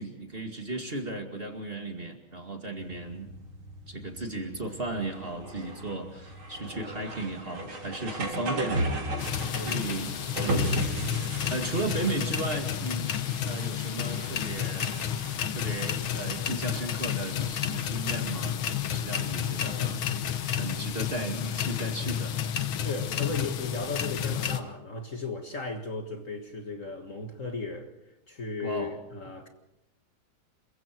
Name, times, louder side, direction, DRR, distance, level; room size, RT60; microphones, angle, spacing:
voice 1, 0.0-3.3 3.9-9.2 9.6-10.1 10.4-10.9 11.2-13.1 13.4-14.9 15.5-22.4 28.6-28.9, right 2 dB, 30° right, 2.2 m, -35 dB
sound 1, 2.8-20.7, right 1 dB, 85° right, 4.2 m, -37 dB
sound 2, 9.2-24.6, left 9 dB, 85° left, 2.0 m, -31 dB
voice 2, 9.4-9.8 19.6-19.9 22.8-27.9 28.3-29.5, left 3 dB, 40° left, 2.0 m, -36 dB
28.0 x 23.0 x 4.6 m
omnidirectional pair, 2.2 m